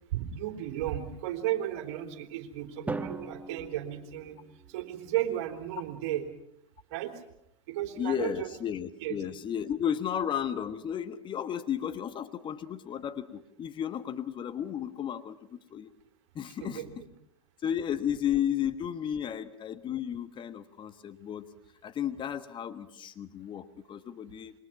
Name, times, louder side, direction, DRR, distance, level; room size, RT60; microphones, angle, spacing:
voice 1, 0.1-4.4 4.7-6.3 6.9-7.1 7.7-8.5 9.0-9.2 16.6-17.0, right 12 dB, 55° right, 6 dB, 3.6 m, -34 dB
Drum, 2.9-5.0, right 3 dB, 10° right, 1.1 m, -39 dB
voice 2, 8.0-15.9 16.3-16.8 17.6-21.5 21.8-24.5, left 9 dB, 30° left, 10 dB, 1.3 m, -33 dB
27.0 x 23.0 x 5.9 m, 0.79 s
hypercardioid pair, 100°, 17 cm